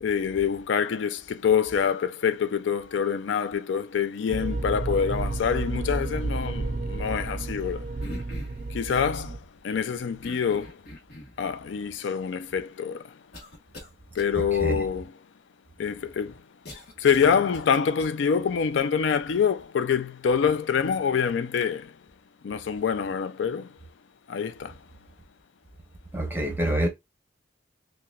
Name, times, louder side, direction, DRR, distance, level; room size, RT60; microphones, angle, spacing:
voice 1, 0.0-7.9 8.7-9.4 9.6-10.8 11.4-13.1 14.2-15.1 15.8-16.3 17.0-21.9 22.4-23.7 24.3-24.7, left 7 dB, 80° left, 0.4 m, -26 dB
sound 1, 4.3-9.4, right 2 dB, 40° right, 0.3 m, -31 dB
sound 2, 8.0-8.7 10.2-11.4 12.2-12.3 13.3-13.9 14.2-14.3 16.6-18.1, left 1 dB, 55° left, 1.1 m, -42 dB
voice 2, 14.4-14.9 26.1-26.9, right 1 dB, 10° right, 0.8 m, -27 dB
5.6 x 2.2 x 2.3 m
head